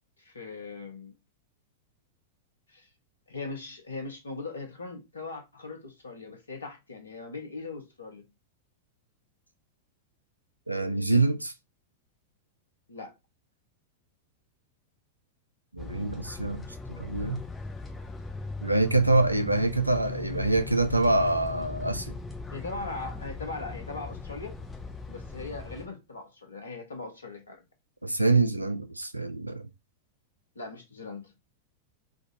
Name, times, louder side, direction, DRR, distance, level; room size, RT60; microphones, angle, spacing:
voice 1, 0.2-1.1 2.7-2.9 3.3-8.3 12.9-13.1 22.5-24.5 25.1-27.6 30.5-31.3, left 3 dB, 75° left, 0.8 m, -40 dB
voice 2, 10.7-11.5 15.7-16.6 16.9-17.4 18.6-22.1 28.0-29.7, right 2 dB, 85° right, 0.4 m, -25 dB
sound 1, 15.8-25.9, left 3 dB, 10° left, 0.7 m, -39 dB
3.5 x 2.4 x 2.7 m
figure-of-eight pair, 90°, 0 cm